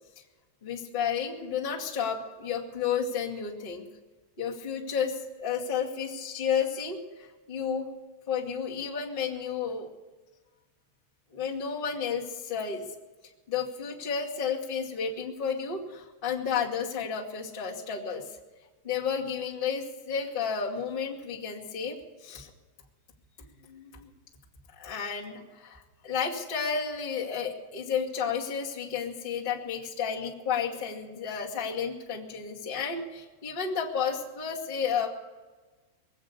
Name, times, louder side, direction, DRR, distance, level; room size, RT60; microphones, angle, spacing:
voice 1, 0.6-3.8 4.4-7.9 8.3-9.9 11.3-12.8 13.5-18.3 18.8-22.5 23.6-24.1 24.8-35.1, left 6 dB, 60° left, -4 dB, 0.5 m, -32 dB
22.0 x 8.2 x 7.2 m, 1.3 s
omnidirectional pair, 5.4 m